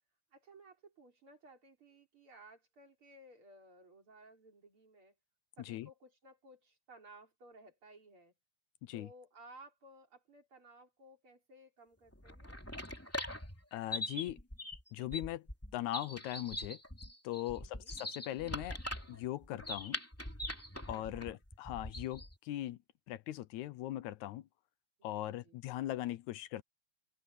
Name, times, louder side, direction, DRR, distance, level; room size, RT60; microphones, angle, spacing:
voice 1, 0.3-5.1 5.6-8.3 8.9-12.6 17.5-17.9 20.9-21.4 25.0-25.6, right 1 dB, 45° right, 5.0 m, -58 dB
voice 2, 5.6-5.9 8.8-9.1 13.7-14.4 14.9-15.5 15.7-16.8 17.2-18.8 19.1-20.0 20.9-22.8 23.1-24.5 25.0-26.6, left 14 dB, 80° left, 2.1 m, -40 dB
sound 1, 12.1-22.4, left 1 dB, 5° left, 2.7 m, -43 dB
omnidirectional pair, 3.4 m